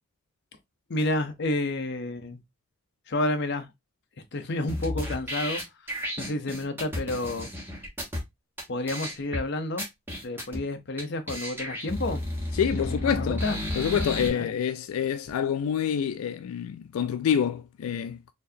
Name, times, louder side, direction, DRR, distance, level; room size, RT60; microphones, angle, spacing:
voice 1, 0.9-2.4 3.1-3.7 4.3-5.6 6.2-7.5 8.7-9.8 10.2-12.2 12.7-13.6 14.2-14.5, left 2 dB, 55° left, 0.7 m, -30 dB
sound 1, 4.7-8.2 8.6-8.7 8.9-9.4 9.8-10.6 11.0-11.1 11.3-14.3, left 1 dB, 10° right, 1.3 m, -32 dB
voice 2, 12.5-13.4 13.8-18.2, left 8 dB, 85° left, 0.3 m, -27 dB
4.4 x 2.7 x 2.7 m
head